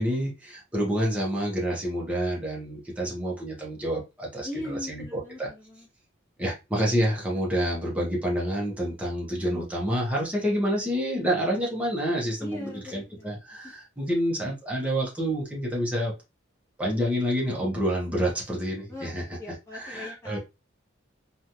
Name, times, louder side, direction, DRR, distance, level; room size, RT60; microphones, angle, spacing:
voice 1, 0.0-5.0 5.4-5.5 6.4-16.1 16.8-19.2 19.7-20.4, equal, 5° right, 0.8 m, -28 dB
voice 2, 4.4-5.9 7.6-7.7 12.4-13.3 18.9-20.4, left 2 dB, 15° left, 1.1 m, -39 dB
3.0 x 2.3 x 2.7 m
head